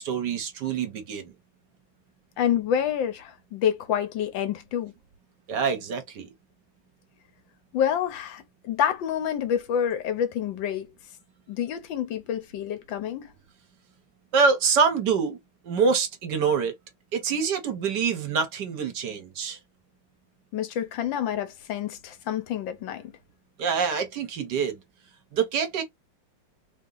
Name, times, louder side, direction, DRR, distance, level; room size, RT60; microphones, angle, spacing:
voice 1, 0.0-1.3 5.5-6.3 14.3-15.4 15.6-16.8 17.1-19.6 23.6-24.8 25.3-25.8, right 5 dB, 65° right, 1.5 m, -25 dB
voice 2, 2.4-4.9 7.7-10.9 11.5-13.3 20.5-23.1, left 9 dB, 75° left, 1.5 m, -28 dB
3.6 x 2.8 x 3.8 m
omnidirectional pair, 2.1 m